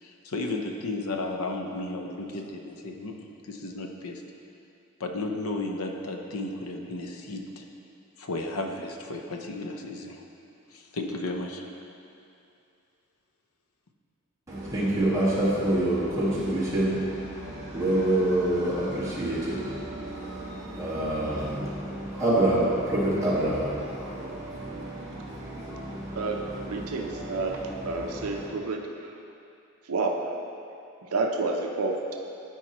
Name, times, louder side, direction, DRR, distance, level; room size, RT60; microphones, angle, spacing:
voice 1, 0.0-4.2 5.0-7.7 8.2-10.3 10.7-11.7, left 2 dB, 80° left, 3 dB, 0.7 m, -34 dB
voice 2, 14.5-28.5, right 1 dB, 15° right, -9 dB, 1.7 m, -28 dB
voice 3, 26.7-28.8 29.9-30.3 31.1-32.2, right 3 dB, 80° right, 2 dB, 0.6 m, -29 dB
13.0 x 4.6 x 3.0 m, 2.6 s
head